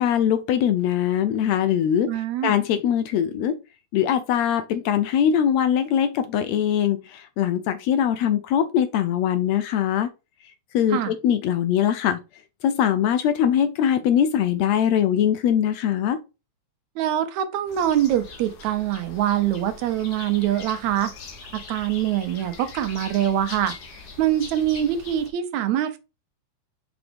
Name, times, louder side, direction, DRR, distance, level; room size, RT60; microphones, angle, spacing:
voice 1, 0.0-3.6 3.9-10.1 10.7-12.2 12.6-16.2, left 9 dB, 80° left, 1.7 m, -22 dB
voice 2, 2.1-2.5 10.9-11.1 17.0-21.1 21.5-23.8 24.2-26.0, right 11 dB, 75° right, 2.0 m, -24 dB
sound 1, 17.7-25.3, left 4 dB, 60° left, 1.0 m, -42 dB
6.0 x 4.8 x 3.3 m
omnidirectional pair, 3.4 m